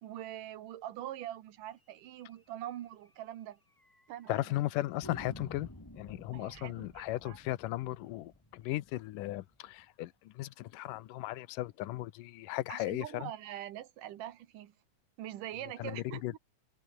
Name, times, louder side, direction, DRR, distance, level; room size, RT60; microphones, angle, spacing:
voice 1, 0.0-3.6 4.1-4.5 6.3-7.4 12.7-14.7 15.2-16.4, right 12 dB, 85° right, 2.9 m, -43 dB
sound 1, 2.2-2.3 2.7-2.8 3.0-3.1 3.8-4.3 5.0-9.8, left 1 dB, 5° left, 2.9 m, -52 dB
voice 2, 4.3-5.7 6.0-13.3 15.8-16.3, left 16 dB, 85° left, 2.5 m, -36 dB
omnidirectional pair, 3.7 m